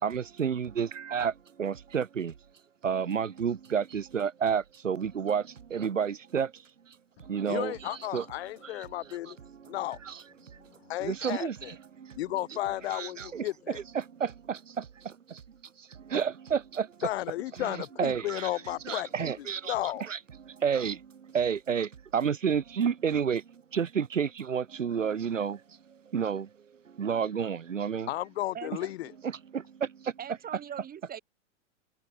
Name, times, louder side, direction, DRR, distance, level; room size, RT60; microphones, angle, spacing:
voice 1, 0.0-2.3 2.8-7.7 8.1-8.2 9.6-9.7 10.1-10.2 10.4-10.7 11.0-11.6 12.0-12.2 12.9-15.4 15.8-17.1 17.6-18.5 18.9-19.7 20.0-25.6 25.9-26.5 26.8-28.1 29.2-30.1, right 7 dB, 85° right, 1.8 m, -31 dB
voice 2, 7.5-9.4 9.7-10.0 10.8-11.7 12.1-13.8 17.0-19.1 19.4-20.0 28.1-29.1, left 15 dB, 55° left, 1.5 m, -34 dB
voice 3, 28.5-28.9 30.2-31.2, right 9 dB, 25° right, 6.6 m, -41 dB
hypercardioid pair, 105°, 37 cm